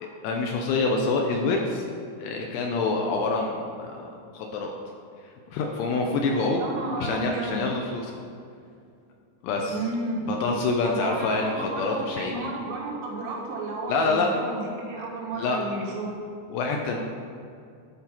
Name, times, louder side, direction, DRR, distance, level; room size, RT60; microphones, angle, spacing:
voice 1, 0.0-1.9 2.2-4.7 5.2-6.6 7.0-8.2 9.4-9.8 10.3-12.3 13.9-14.3 15.3-15.6 16.5-17.0, left 3 dB, 80° left, 1 dB, 2.5 m, -26 dB
voice 2, 6.5-7.7 9.7-10.3 10.8-16.2, right 2 dB, 85° right, -3 dB, 4.1 m, -32 dB
11.5 x 4.4 x 5.8 m, 2.4 s
omnidirectional pair, 5.6 m